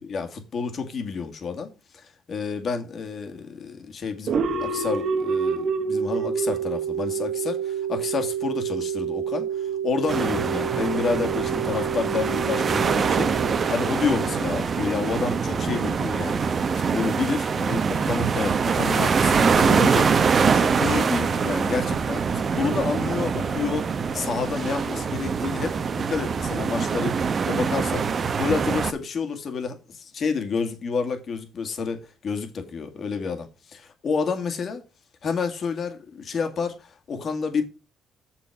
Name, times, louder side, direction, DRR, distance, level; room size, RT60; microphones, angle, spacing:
voice 1, 0.0-16.6 16.9-25.7 26.1-33.5 33.7-34.8 35.2-37.6, left 5 dB, 50° left, 2.0 m, -29 dB
sound 1, 4.3-15.0, right 6 dB, 60° right, 1.5 m, -28 dB
sound 2, 10.1-28.9, right 5 dB, 45° right, 1.0 m, -24 dB
7.4 x 6.9 x 4.7 m
cardioid pair, 85°, 0 cm